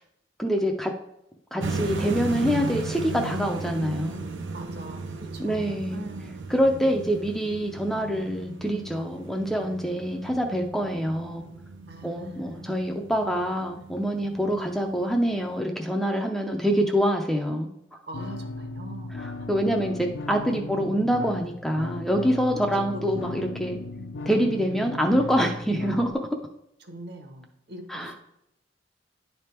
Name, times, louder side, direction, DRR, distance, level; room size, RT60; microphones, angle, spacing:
voice 1, 0.4-0.9 1.5-4.3 5.4-6.0 6.5-11.5 12.0-17.7 19.2-23.8 24.3-26.2 27.9-28.1, equal, ahead, 2 dB, 0.5 m, -25 dB
sound 1, 1.6-15.6, right 3 dB, 80° right, 0.7 m, -36 dB
voice 2, 4.5-6.4 11.9-12.6 13.8-13.9 14.5-14.7 18.1-19.5 20.5-20.6 22.7-23.3 23.9-24.2 26.8-28.2, right 1 dB, 60° right, 5 dB, 1.1 m, -43 dB
sound 2, 18.1-26.1, left 2 dB, 75° left, 0.5 m, -36 dB
10.0 x 3.4 x 4.4 m, 0.82 s
head